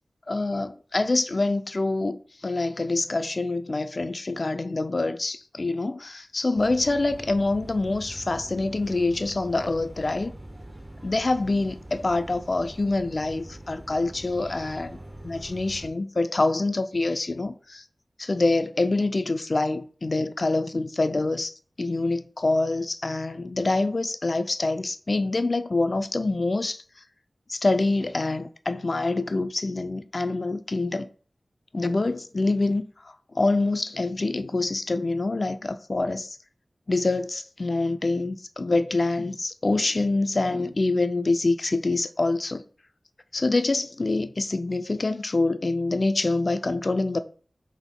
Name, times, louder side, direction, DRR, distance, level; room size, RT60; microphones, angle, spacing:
voice 1, 0.3-10.3 11.0-15.0 15.2-17.8 18.2-21.5 21.8-26.8 27.5-31.1 31.7-32.8 33.3-36.4 36.9-42.6 43.3-47.2, left 2 dB, 55° left, 0.4 m, -25 dB
sound 1, 6.6-15.9, right 1 dB, 25° right, 0.8 m, -43 dB
5.9 x 3.5 x 2.2 m
wide cardioid pair, 70°, 0 cm